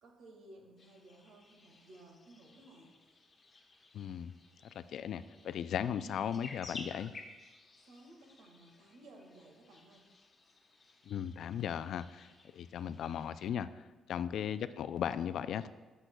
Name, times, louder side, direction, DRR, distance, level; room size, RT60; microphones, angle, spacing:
voice 1, 0.0-2.9 5.8-6.2 7.8-10.1 14.2-14.4, right 1 dB, 80° right, 1 dB, 1.8 m, -57 dB
sound 1, 0.8-13.5, left 3 dB, 40° left, 1.0 m, -55 dB
voice 2, 3.9-4.3 4.7-7.1 11.1-13.8 14.1-15.7, left 9 dB, 70° left, 13 dB, 0.3 m, -37 dB
9.9 x 8.0 x 2.3 m, 1.3 s
cardioid pair, 90°, 0 cm